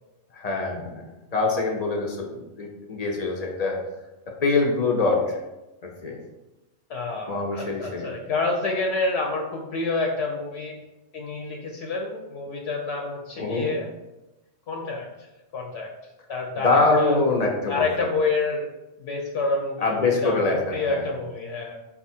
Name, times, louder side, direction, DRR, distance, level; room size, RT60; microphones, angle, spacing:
voice 1, 0.3-3.8 4.3-5.4 5.8-6.2 7.3-8.1 13.4-13.7 16.6-17.9 19.8-21.1, left 3 dB, 50° left, 1 dB, 0.5 m, -24 dB
voice 2, 6.9-10.7 11.1-13.9 14.7-15.1 15.5-15.9 16.3-17.2 17.7-18.7 19.0-21.7, left 3 dB, 70° left, 1 dB, 0.8 m, -28 dB
4.1 x 2.4 x 4.2 m, 1.0 s
omnidirectional pair, 1.2 m